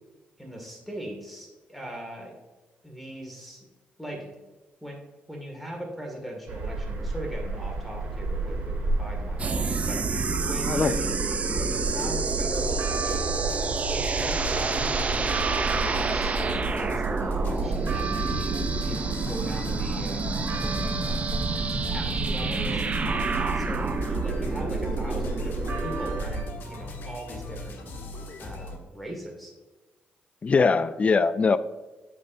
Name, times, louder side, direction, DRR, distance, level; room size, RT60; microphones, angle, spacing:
voice 1, 0.4-2.4 2.8-3.7 4.0-4.3 4.8-5.0 5.3-13.4 13.9-21.5 21.9-27.8 28.4-29.5, right 1 dB, ahead, 0 dB, 2.0 m, -40 dB
sound 1, 6.5-26.4, right 3 dB, 70° right, 2.3 m, -31 dB
sound 2, 9.4-26.2, right 4 dB, 35° right, 0.6 m, -29 dB
sound 3, 11.6-28.8, left 2 dB, 65° left, 1.4 m, -39 dB
voice 2, 30.4-31.6, left 4 dB, 35° left, 14 dB, 0.4 m, -21 dB
8.6 x 6.0 x 2.7 m, 1.1 s
cardioid pair, 90°, 4 cm